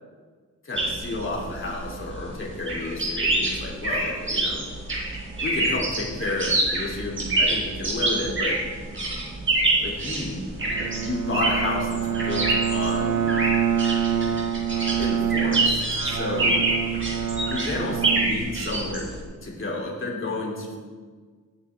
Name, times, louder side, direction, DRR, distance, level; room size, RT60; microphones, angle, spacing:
voice 1, 0.6-4.6 5.4-8.6 9.8-10.4 11.0-13.4 14.2-14.3 15.0-16.7 17.5-20.8, left 2 dB, 40° left, -3 dB, 3.4 m, -31 dB
sound 1, 0.7-19.2, right 2 dB, 40° right, 4.1 m, -26 dB
Bowed string instrument, 10.6-19.1, right 8 dB, 90° right, 0.9 m, -27 dB
19.0 x 9.5 x 3.6 m, 1.5 s
wide cardioid pair, 135°, 31 cm